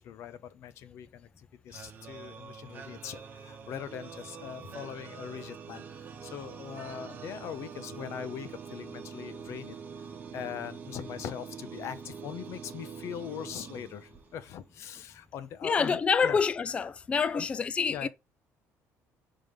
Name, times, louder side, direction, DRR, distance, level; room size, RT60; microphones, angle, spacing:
voice 1, 0.0-9.8 10.3-16.4 17.3-17.5 17.9-18.1, left 9 dB, 55° left, 0.7 m, -41 dB
sound 1, 1.7-14.6, right 6 dB, 30° right, 1.1 m, -45 dB
voice 2, 15.6-18.1, left 5 dB, 20° left, 0.3 m, -27 dB
5.0 x 3.8 x 5.2 m
cardioid pair, 160°, 6 cm